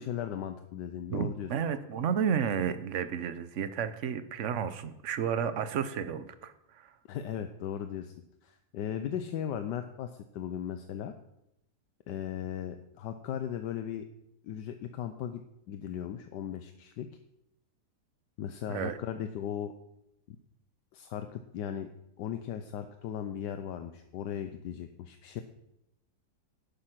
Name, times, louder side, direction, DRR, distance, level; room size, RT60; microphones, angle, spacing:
voice 1, 0.0-1.5 7.1-8.1 8.4-11.1 12.1-14.0 14.4-15.4 15.7-17.1 18.4-19.7 20.9-21.9 22.2-25.4, left 9 dB, 80° left, 8 dB, 1.3 m, -37 dB
voice 2, 1.1-6.9 18.7-19.0, right 7 dB, 55° right, 11 dB, 1.0 m, -32 dB
10.5 x 9.6 x 5.9 m, 0.84 s
omnidirectional pair, 1.8 m